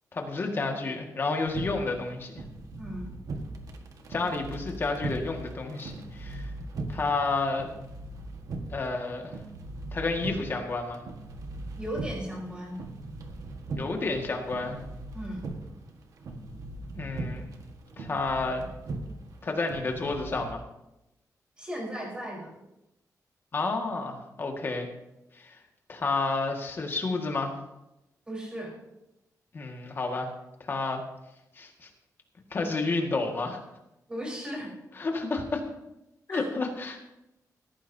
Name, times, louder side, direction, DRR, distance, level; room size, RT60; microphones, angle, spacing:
voice 1, 0.1-2.3 4.1-6.5 6.9-7.7 8.7-9.3 9.9-11.0 13.8-14.8 17.0-17.4 18.0-18.6 19.4-20.6 23.5-24.9 25.3-25.6 25.9-27.5 29.5-30.3 30.6-31.0 31.6-31.9 32.5-33.6 35.0-35.6 36.3-37.0, left 3 dB, 35° left, 2 dB, 1.8 m, -30 dB
sound 1, 1.4-20.5, right 2 dB, 65° right, 1.5 m, -39 dB
voice 2, 2.8-3.1 11.8-12.8 15.1-15.5 21.6-22.5 28.3-28.8 34.1-34.7 36.3-36.5, equal, 15° right, -3 dB, 4.1 m, -36 dB
17.5 x 14.5 x 2.8 m, 0.92 s
wide cardioid pair, 175°, 6 cm